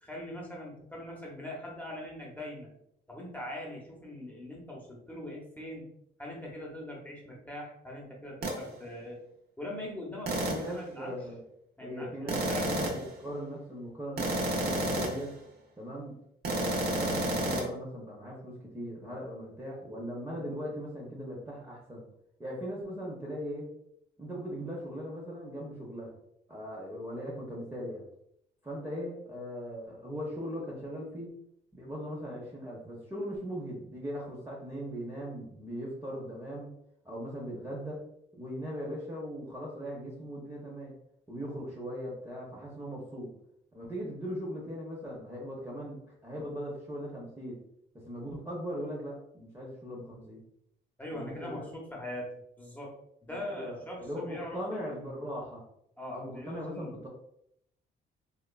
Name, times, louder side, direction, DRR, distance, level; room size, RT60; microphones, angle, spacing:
voice 1, 0.0-2.7 3.1-5.9 6.2-9.2 9.6-11.1 11.8-12.8 51.0-52.3 52.6-52.9 53.2-55.0 56.0-56.9, left 1 dB, 10° left, -3 dB, 0.9 m, -42 dB
sound 1, 8.4-8.6 10.3-10.7 12.3-13.1 14.2-15.3 16.4-17.7, right 1 dB, 50° right, 0.6 m, -30 dB
voice 2, 10.5-11.4 11.8-15.3 15.8-16.1 16.5-22.0 22.4-23.7 24.2-26.1 26.5-28.0 28.6-31.3 31.7-36.7 37.0-38.0 38.3-41.0 41.3-43.3 43.7-47.6 48.0-50.4 51.1-51.7 53.3-55.6 56.1-57.1, equal, 10° right, -4 dB, 0.6 m, -39 dB
2.9 x 2.3 x 2.2 m, 0.74 s
cardioid pair, 90°, 20 cm